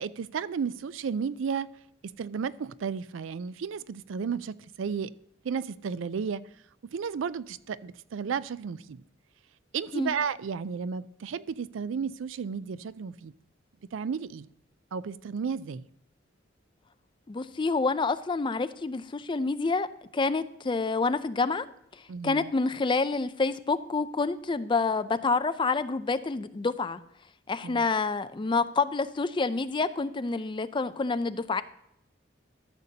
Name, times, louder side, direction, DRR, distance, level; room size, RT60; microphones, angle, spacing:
voice 1, 0.0-1.7 2.2-5.1 5.4-6.4 6.9-9.0 9.7-13.3 13.9-14.5 14.9-15.9 22.1-22.5 27.6-27.8, right 6 dB, 85° right, 0.4 m, -33 dB
voice 2, 17.3-19.9 20.1-21.7 21.9-27.0 27.5-31.6, left 4 dB, 25° left, 0.4 m, -28 dB
13.5 x 6.7 x 2.8 m
head